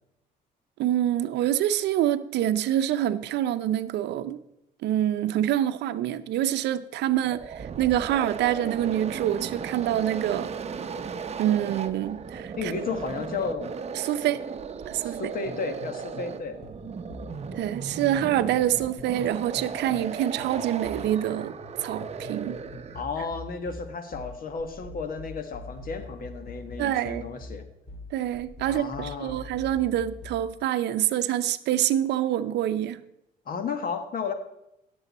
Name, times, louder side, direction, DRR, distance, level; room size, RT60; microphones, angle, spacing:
voice 1, 0.8-4.4 4.8-10.5 11.4-12.7 14.0-14.4 14.9-15.2 17.5-21.6 21.8-22.6 26.8-27.2 28.1-33.0, right 12 dB, 75° right, 0.6 m, -26 dB
sound 1, 7.1-23.2, right 6 dB, 35° right, 0.8 m, -36 dB
voice 2, 12.6-13.7 15.0-16.6 22.9-27.7 28.7-29.4 33.4-34.3, left 5 dB, 55° left, 1.5 m, -33 dB
sound 2, 15.4-16.4 16.6-20.1 20.4-30.5, left 2 dB, 35° left, 4.2 m, -43 dB
16.0 x 7.0 x 4.2 m
cardioid pair, 90°, 18 cm